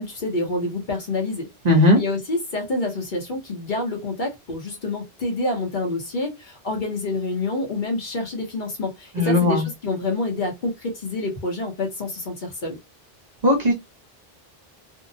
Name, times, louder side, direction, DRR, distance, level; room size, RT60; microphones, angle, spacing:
voice 1, 0.0-1.5 2.0-12.8, left 2 dB, 55° left, 0.9 m, -27 dB
voice 2, 1.6-2.0 9.1-9.6 13.4-13.7, left 1 dB, 45° right, 0.9 m, -17 dB
2.7 x 2.0 x 2.7 m
omnidirectional pair, 1.0 m